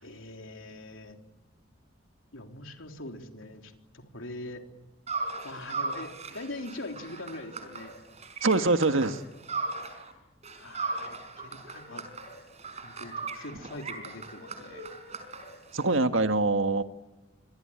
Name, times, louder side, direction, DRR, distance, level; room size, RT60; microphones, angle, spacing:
voice 1, 0.0-1.2 2.3-4.6 5.4-7.9 10.6-12.0 12.8-14.9, left 2 dB, 75° left, 3 dB, 3.7 m, -42 dB
sound 1, 5.1-10.1 10.4-16.0, right 3 dB, 35° right, 5.0 m, -38 dB
voice 2, 8.4-9.2 15.7-16.8, right 3 dB, 75° right, 8 dB, 1.7 m, -24 dB
26.5 x 25.0 x 8.9 m, 1.1 s
head